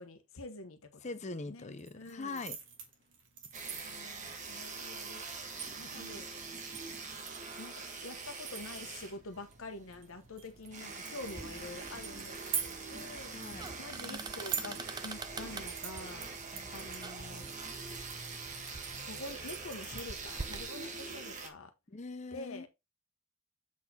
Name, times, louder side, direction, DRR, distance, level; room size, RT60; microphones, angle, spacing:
voice 1, 0.0-0.9 1.5-2.4 3.8-5.2 5.8-6.3 7.6-13.3 13.8-16.3 16.7-17.5 19.1-21.7 22.3-22.7, left 2 dB, 70° left, 1.0 m, -47 dB
voice 2, 1.0-2.6 13.3-13.7 16.5-16.7 21.9-22.7, left 3 dB, 30° left, 0.6 m, -42 dB
sound 1, 1.7-20.4, right 7 dB, 55° right, 1.7 m, -46 dB
sound 2, 3.5-21.5, right 4 dB, 35° right, 1.3 m, -44 dB
sound 3, 11.2-20.7, right 3 dB, 20° right, 0.3 m, -47 dB
7.4 x 4.2 x 4.2 m
head